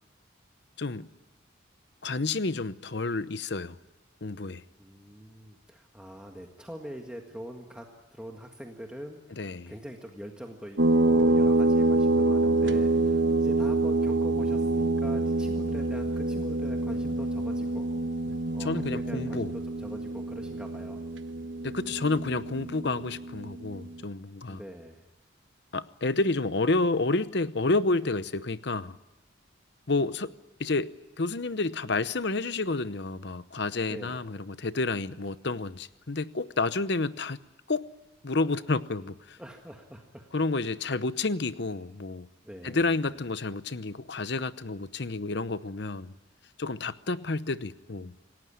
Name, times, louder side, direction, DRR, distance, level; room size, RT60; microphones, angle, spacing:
voice 1, 2.0-3.7 4.2-4.6 9.4-9.7 18.6-19.5 21.6-24.6 25.7-29.0 29.9-30.3 30.6-37.4 37.7-37.9 38.2-39.4 40.3-42.3 42.6-46.1 46.6-48.1, left 3 dB, 55° left, 0.8 m, -30 dB
voice 2, 4.8-7.9 8.1-17.9 18.5-21.1 24.5-25.1 33.8-34.2 39.4-40.3 42.4-43.1, equal, 5° right, 1.6 m, -43 dB
sound 1, 10.8-23.9, right 2 dB, 65° right, 1.2 m, -26 dB
27.5 x 18.0 x 9.9 m
head